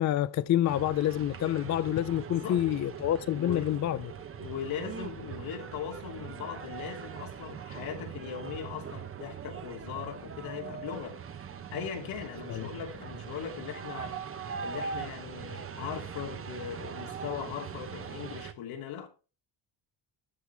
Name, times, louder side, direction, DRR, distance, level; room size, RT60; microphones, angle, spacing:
voice 1, 0.0-4.0 12.5-12.7, left 12 dB, 40° left, 0.5 m, -27 dB
sound 1, 0.7-18.5, right 7 dB, 30° right, 0.9 m, -41 dB
voice 2, 2.3-2.6 3.4-3.7 4.4-11.2 11.7-19.1, left 8 dB, 85° left, 2.9 m, -39 dB
13.5 x 7.8 x 3.4 m
cardioid pair, 155°, 46 cm